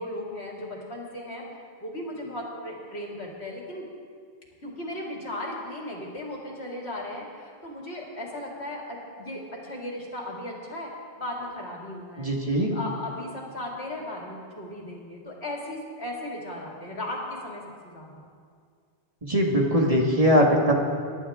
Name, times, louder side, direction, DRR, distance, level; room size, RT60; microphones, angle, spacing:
voice 1, 0.0-1.4 1.8-3.9 4.6-10.9 11.2-12.3 12.7-18.3, left 1 dB, 75° left, -2 dB, 2.8 m, -36 dB
voice 2, 12.2-12.7 19.2-20.7, equal, 35° right, -1 dB, 1.7 m, -21 dB
24.0 x 11.5 x 3.6 m, 2.1 s
omnidirectional pair, 1.1 m